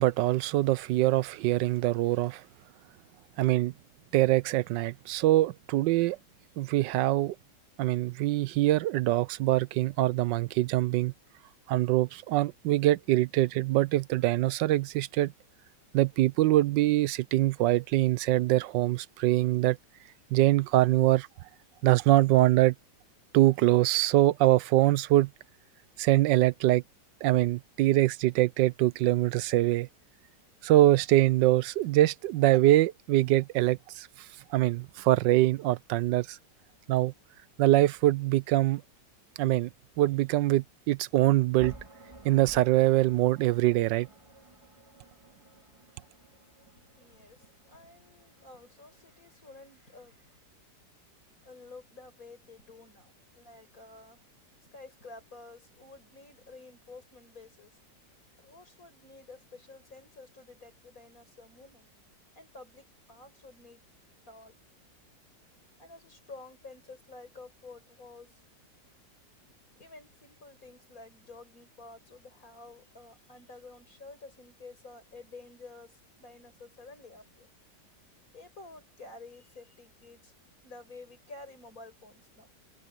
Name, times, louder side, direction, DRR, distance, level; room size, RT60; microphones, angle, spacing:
voice 1, 0.0-2.4 3.4-3.7 4.1-6.2 6.6-7.3 7.8-11.1 11.7-15.3 15.9-19.8 20.3-21.3 21.8-22.7 23.3-25.3 26.0-26.8 27.2-29.9 30.6-34.1 34.5-36.4 36.9-37.1 37.6-38.8 39.4-39.7 40.0-41.7 42.2-44.1, right 16 dB, 85° right, 1.3 m, -24 dB
sound 1, 41.6-49.6, right 2 dB, 15° right, 2.1 m, -52 dB
voice 2, 46.6-50.4 51.4-54.3 54.6-57.8 58.4-61.9 62.3-63.8 64.3-64.7 65.8-68.3 69.8-77.5 78.3-80.3 80.6-82.5, left 3 dB, 50° left, 6.6 m, -51 dB
omnidirectional pair, 1.9 m